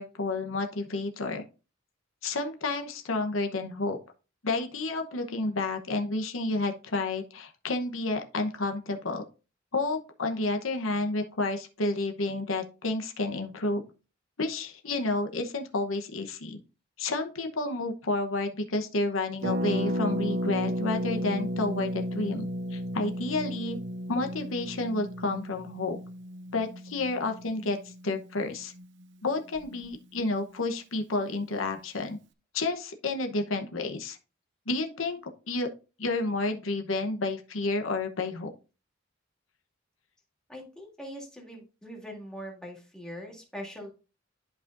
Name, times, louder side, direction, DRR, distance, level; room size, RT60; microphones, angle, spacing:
voice 1, 0.0-1.4 2.2-4.0 4.4-9.2 9.7-13.9 14.4-16.6 17.0-22.4 22.7-23.8 24.1-26.0 26.5-28.7 29.2-32.2 32.5-34.2 34.7-35.2 35.5-35.7 36.0-38.5, left 2 dB, 90° left, 5 dB, 1.0 m, -30 dB
Harp, 19.4-29.0 29.3-29.4 29.5-29.9, equal, 60° right, 0.6 m, -33 dB
voice 2, 40.5-43.9, equal, 5° left, -1 dB, 2.0 m, -42 dB
11.0 x 4.9 x 2.6 m, 0.33 s
head